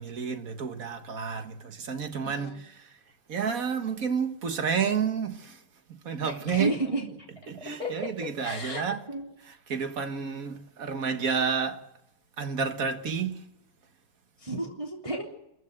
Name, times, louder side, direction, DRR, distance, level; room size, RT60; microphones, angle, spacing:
voice 1, 0.0-2.9 3.3-5.6 5.9-6.7 7.5-9.0 9.5-11.9 12.4-13.4, right 6 dB, 45° right, 1.8 m, -30 dB
voice 2, 2.2-2.6 6.2-7.1 7.8-9.3 14.4-15.2, right 1 dB, 15° right, 3.1 m, -33 dB
27.5 x 15.0 x 7.9 m
omnidirectional pair, 2.4 m